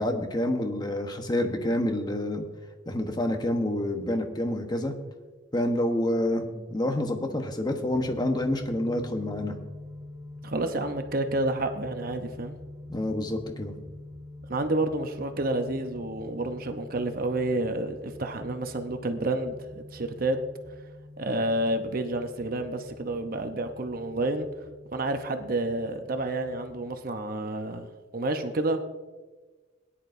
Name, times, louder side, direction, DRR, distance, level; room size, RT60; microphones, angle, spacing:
voice 1, 0.0-2.4 2.9-4.9 5.5-9.5 12.9-13.7, left 1 dB, 20° left, 4 dB, 1.1 m, -28 dB
sound 1, 7.9-26.9, left 2 dB, 15° right, 3.5 m, -45 dB
voice 2, 10.4-12.6 14.5-20.4 21.2-24.5 24.9-28.8, right 2 dB, 50° right, 6 dB, 0.8 m, -29 dB
18.0 x 10.0 x 2.6 m, 1.3 s
head